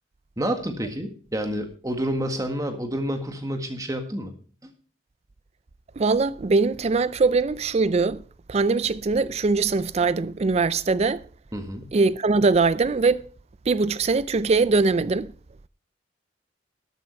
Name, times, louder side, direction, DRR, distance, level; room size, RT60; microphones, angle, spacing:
voice 1, 0.4-4.3 4.6-4.7 11.5-11.9, equal, 20° right, 1.7 m, -29 dB
voice 2, 6.0-8.2 8.5-11.2 11.9-13.2 13.7-15.3, right 4 dB, 35° right, 0.4 m, -22 dB
13.0 x 9.2 x 4.4 m
head